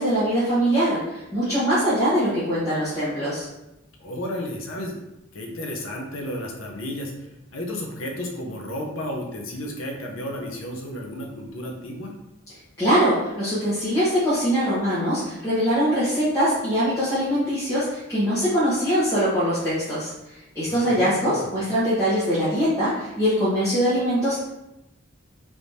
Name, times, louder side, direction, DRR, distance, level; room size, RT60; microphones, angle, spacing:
voice 1, 0.0-3.5 12.8-20.1 20.5-24.4, equal, 15° left, -13 dB, 1.1 m, -22 dB
voice 2, 4.0-5.0 5.3-7.1 7.5-12.1 20.6-21.5, left 1 dB, 75° left, 0 dB, 0.7 m, -33 dB
3.4 x 3.2 x 2.7 m, 0.93 s
head